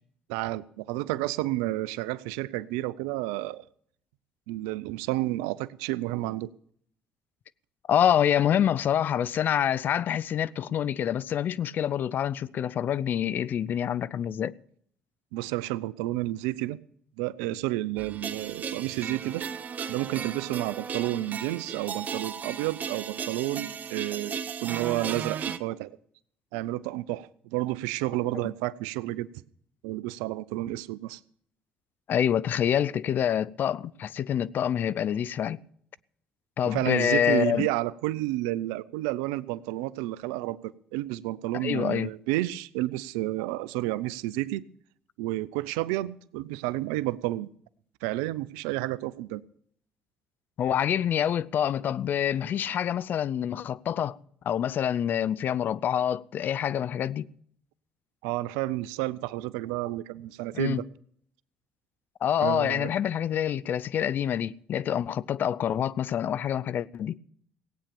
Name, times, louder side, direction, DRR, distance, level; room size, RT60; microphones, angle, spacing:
voice 1, 0.3-3.7 4.5-6.5 15.3-16.8 17.2-19.4 19.9-25.9 26.5-29.3 29.8-31.2 36.6-44.6 45.2-47.5 48.0-49.4 58.2-60.8 62.4-62.9, right 17 dB, 85° right, 0.5 m, -31 dB
voice 2, 7.9-14.6 32.1-35.6 36.6-37.7 41.5-42.1 50.6-54.2 54.4-57.3 60.5-60.8 62.2-67.2, left 9 dB, 60° left, 0.5 m, -26 dB
sound 1, 18.0-25.6, right 7 dB, 50° right, 0.9 m, -35 dB
17.5 x 8.9 x 6.9 m
hypercardioid pair, 60°, 4 cm